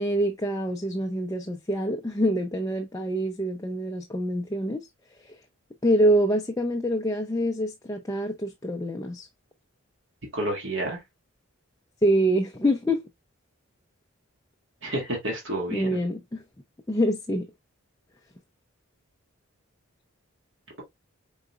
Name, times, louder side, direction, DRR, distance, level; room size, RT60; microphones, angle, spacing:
voice 1, 0.0-4.9 5.2-5.4 5.8-9.3 12.0-13.0 15.7-16.4 16.9-17.5, equal, 15° left, 0.4 m, -25 dB
voice 2, 10.3-11.0 14.8-16.0, right 1 dB, 60° right, 2.0 m, -30 dB
4.8 x 3.9 x 2.3 m
head